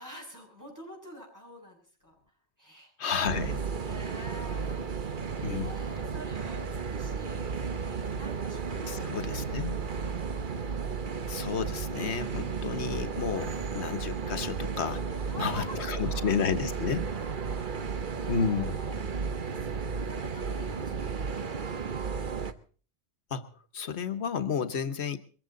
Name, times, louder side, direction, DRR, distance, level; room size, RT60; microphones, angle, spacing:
voice 1, 0.0-2.1 2.6-2.9 3.3-9.2 9.5-9.6 15.1-16.6 17.0-22.1 24.8-25.0, equal, 15° right, 1 dB, 6.0 m, -48 dB
voice 2, 3.0-3.6 5.4-5.7 8.9-9.8 11.3-15.1 15.4-17.1 18.3-18.8 23.3-23.5 23.7-25.2, left 6 dB, 90° left, 10 dB, 1.3 m, -31 dB
sound 1, 3.3-22.5, right 5 dB, 50° right, 1.1 m, -34 dB
22.5 x 15.0 x 3.8 m, 0.41 s
omnidirectional pair, 1.1 m